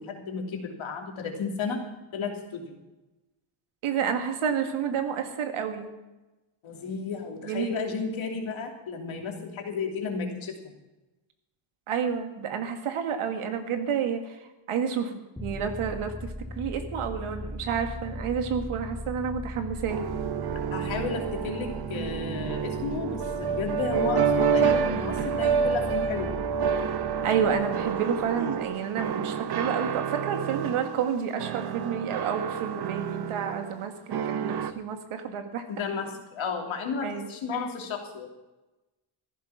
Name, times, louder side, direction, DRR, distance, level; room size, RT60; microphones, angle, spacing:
voice 1, 0.0-1.8 2.1-2.7 6.6-10.6 20.7-26.3 35.7-38.3, left 5 dB, 65° left, 2 dB, 3.1 m, -33 dB
voice 2, 3.8-5.9 7.4-7.7 11.9-20.1 27.2-35.7 37.0-37.3, right 7 dB, 75° right, 6 dB, 2.0 m, -30 dB
sound 1, 15.4-28.8, left 1 dB, 5° left, 0.5 m, -39 dB
sound 2, 19.9-31.1 31.4-33.8 34.1-34.7, right 7 dB, 50° right, 1.0 m, -28 dB
14.5 x 11.0 x 5.9 m, 1.1 s
cardioid pair, 100°, 50 cm